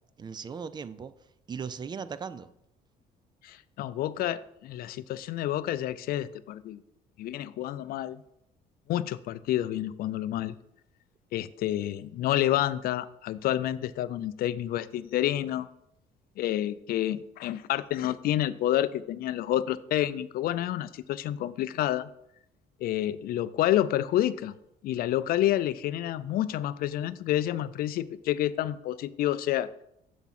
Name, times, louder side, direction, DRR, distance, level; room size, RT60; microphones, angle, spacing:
voice 1, 0.2-1.1 1.5-2.5, right 6 dB, 25° right, 15 dB, 0.4 m, -38 dB
voice 2, 3.4-6.8 7.2-8.2 8.9-10.5 11.3-15.7 16.4-22.1 22.8-24.6 24.8-29.7, left 13 dB, 65° left, 16 dB, 0.4 m, -29 dB
7.0 x 3.6 x 5.8 m, 0.80 s
cardioid pair, 110°, 17 cm